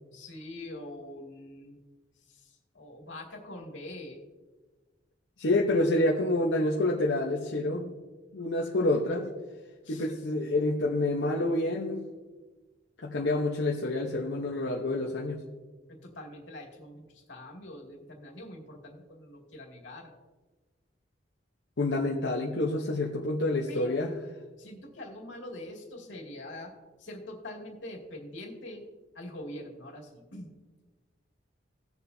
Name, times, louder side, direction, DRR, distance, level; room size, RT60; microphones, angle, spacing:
voice 1, 0.1-1.8 2.2-4.2 8.7-9.0 9.8-10.1 15.9-20.1 23.7-24.0 24.6-26.7 27.0-28.8 29.1-30.5, left 1 dB, 90° left, -1 dB, 2.3 m, -44 dB
voice 2, 5.4-7.9 8.3-9.3 9.9-12.0 13.0-15.4 21.8-24.1, left 2 dB, 75° left, -1 dB, 0.9 m, -28 dB
18.0 x 7.1 x 2.7 m, 1.3 s
head